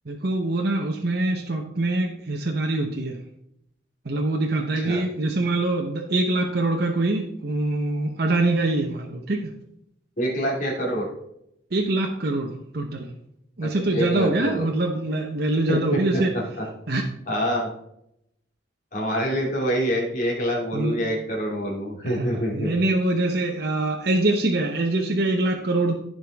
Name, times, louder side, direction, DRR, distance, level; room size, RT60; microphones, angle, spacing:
voice 1, 0.1-3.2 4.1-9.5 11.7-13.1 13.6-16.3 16.9-17.0 20.7-21.0 22.0-25.9, right 2 dB, 55° right, 1 dB, 0.9 m, -24 dB
voice 2, 10.2-11.1 13.6-14.7 15.7-16.7 17.3-17.7 18.9-22.7, equal, 45° left, -3 dB, 2.5 m, -26 dB
14.5 x 5.1 x 3.5 m, 0.78 s
head